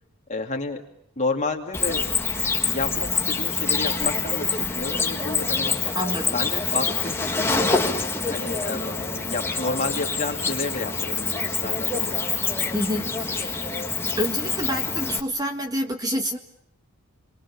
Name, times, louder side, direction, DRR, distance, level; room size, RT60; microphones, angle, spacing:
voice 1, 0.3-0.8 1.2-2.1 2.6-5.8 6.3-8.0 8.3-12.2, left 3 dB, 30° left, 2 dB, 2.7 m, -31 dB
Cricket, 1.7-15.2, left 4 dB, 10° left, 1.7 m, -26 dB
voice 2, 5.9-6.3 12.7-13.7 14.2-16.4, equal, 15° right, 4 dB, 1.8 m, -28 dB
29.5 x 23.0 x 7.3 m, 0.73 s
head